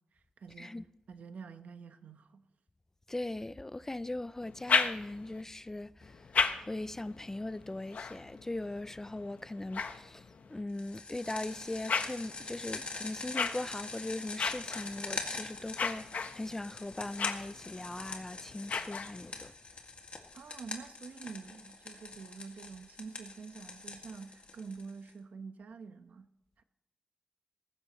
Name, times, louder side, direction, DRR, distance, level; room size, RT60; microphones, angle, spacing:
voice 1, 0.1-0.8 1.1-2.4 20.3-26.3 26.6-26.7, right 5 dB, 80° right, 1.1 m, -47 dB
voice 2, 3.1-6.3 6.6-19.5, left 2 dB, 15° left, 0.4 m, -40 dB
sound 1, 4.4-5.4 6.0-10.6 11.2-19.5, left 5 dB, 70° left, 1.1 m, -37 dB
sound 2, 10.8-25.1, left 3 dB, 50° left, 2.2 m, -44 dB
18.5 x 16.0 x 3.2 m
wide cardioid pair, 95°, 3 cm